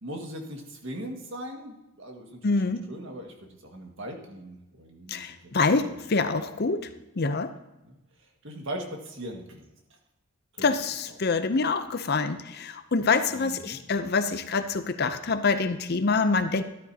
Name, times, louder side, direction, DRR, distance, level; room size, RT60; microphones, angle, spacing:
voice 1, 0.0-2.4 2.6-3.3 3.6-6.0 7.8-8.0 8.4-9.7 10.6-10.7 13.3-13.8, right 1 dB, 60° right, 2 dB, 1.9 m, -39 dB
voice 2, 2.4-2.8 5.1-6.9 7.2-7.5 10.6-16.6, left 4 dB, 45° left, 10 dB, 0.6 m, -26 dB
13.5 x 11.5 x 2.8 m, 0.96 s
head